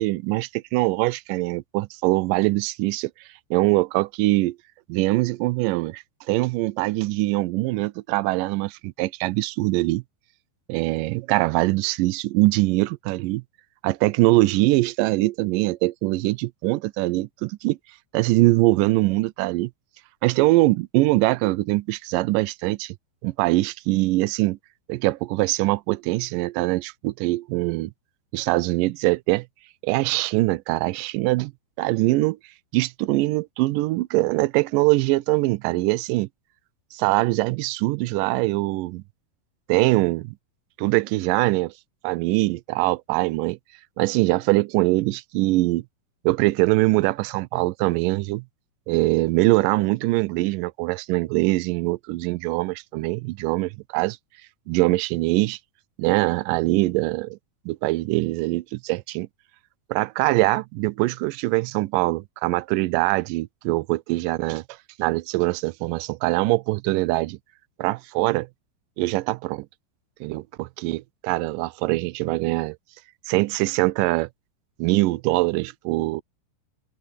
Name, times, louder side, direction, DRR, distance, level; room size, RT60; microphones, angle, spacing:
voice 1, 0.0-3.1 3.5-4.6 4.9-10.0 10.7-13.4 13.8-17.8 18.1-19.7 20.2-22.9 23.2-24.6 24.9-27.9 28.3-29.5 29.8-31.5 31.8-32.4 32.7-36.3 36.9-39.0 39.7-40.4 40.8-41.7 42.0-43.6 44.0-45.8 46.3-48.4 48.9-54.2 54.7-55.6 56.0-57.4 57.7-59.3 59.9-64.6 65.0-67.4 67.8-68.5 69.0-69.7 70.2-72.8 73.3-74.3 74.8-76.2, right 20 dB, 80° right, 2.0 m, -23 dB
open air
omnidirectional pair, 4.3 m